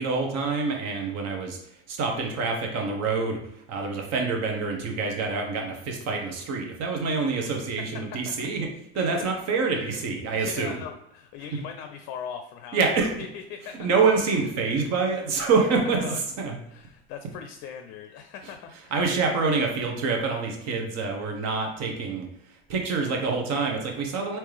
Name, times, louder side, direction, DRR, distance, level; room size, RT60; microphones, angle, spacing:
voice 1, 0.0-1.6 1.9-3.4 3.7-8.7 8.9-10.8 12.7-13.1 13.8-16.6 18.7-22.3 22.7-24.4, right 4 dB, 55° right, 2 dB, 1.0 m, -26 dB
voice 2, 8.9-9.3 10.3-13.9 16.0-18.9, left 7 dB, 60° left, 6 dB, 0.5 m, -40 dB
3.4 x 2.9 x 3.2 m, 0.78 s
hypercardioid pair, 75°, 32 cm